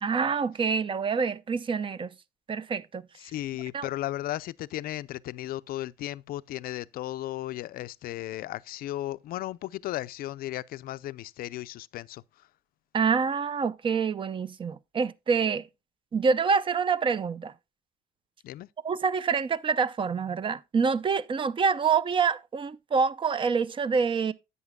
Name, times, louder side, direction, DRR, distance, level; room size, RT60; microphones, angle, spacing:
voice 1, 0.0-2.1 2.5-3.0 3.7-3.9 12.9-15.6 16.1-17.5 18.8-24.3, right 5 dB, 30° right, 0.6 m, -26 dB
voice 2, 3.2-12.2 18.4-18.7, left 15 dB, 60° left, 0.4 m, -35 dB
11.0 x 8.2 x 2.2 m
cardioid pair, 110°, 17 cm